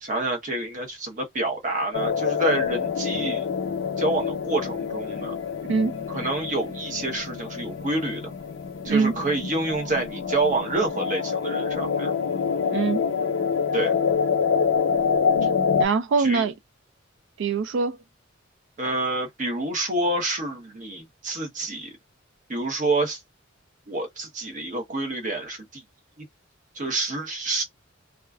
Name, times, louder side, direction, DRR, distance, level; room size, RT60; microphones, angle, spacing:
voice 1, 0.0-3.5 4.0-5.3 6.1-8.3 8.8-12.1 13.7-13.9 16.2-16.5 18.8-21.9 22.5-23.2 23.9-25.8 26.2-26.3 26.7-27.6, right 2 dB, 40° right, 0.8 m, -28 dB
sound 1, 1.9-15.9, left 6 dB, 65° left, 0.6 m, -26 dB
voice 2, 5.7-6.0 8.9-9.1 12.7-13.0 15.8-16.5 17.4-18.0, right 5 dB, 65° right, 0.4 m, -23 dB
2.4 x 2.3 x 2.3 m
head